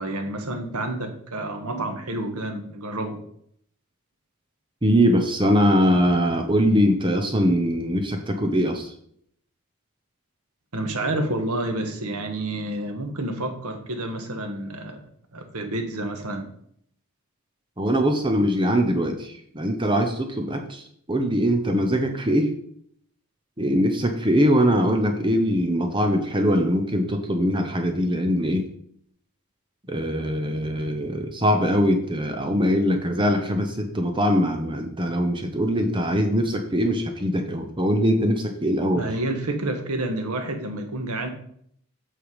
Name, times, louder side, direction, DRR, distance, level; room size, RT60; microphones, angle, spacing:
voice 1, 0.0-3.2 10.7-15.0 15.3-16.5 38.9-41.3, right 1 dB, 90° right, 5 dB, 1.5 m, -29 dB
voice 2, 4.8-8.9 17.8-20.8 21.1-22.5 23.6-28.7 29.9-39.1, equal, 20° right, 5 dB, 0.9 m, -22 dB
8.4 x 5.8 x 4.9 m, 0.66 s
head